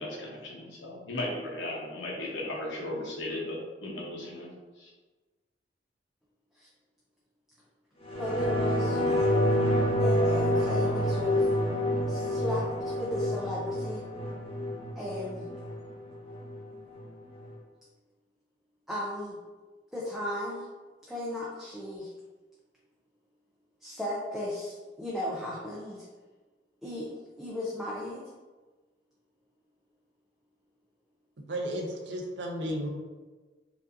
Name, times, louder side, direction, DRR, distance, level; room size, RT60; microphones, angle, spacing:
voice 1, 0.0-4.5 4.8-4.9, left 1 dB, 85° left, -2 dB, 0.9 m, -36 dB
sound 1, 8.0-17.0 17.4-17.5, equal, 35° left, 0.9 m, -28 dB
voice 2, 8.2-9.4 10.0-11.5 12.1-14.0 15.0-15.5 18.9-19.4 19.9-20.7 21.0-22.1 23.8-26.1 26.8-27.1 27.4-28.2, left 1 dB, ahead, -6 dB, 0.4 m, -35 dB
voice 3, 31.5-32.9, equal, 75° right, 1 dB, 0.5 m, -33 dB
4.7 x 2.5 x 2.6 m, 1.3 s
head